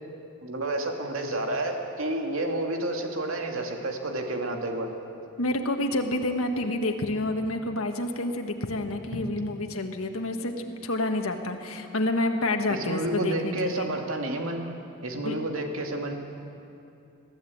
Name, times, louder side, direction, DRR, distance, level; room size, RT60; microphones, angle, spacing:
voice 1, 0.4-4.9 12.7-14.7 15.0-16.1, right 1 dB, 75° right, 3 dB, 2.4 m, -30 dB
voice 2, 5.4-10.5 10.8-13.9 15.2-15.4, left 2 dB, 85° left, 4 dB, 1.6 m, -28 dB
22.0 x 14.5 x 8.6 m, 2.7 s
head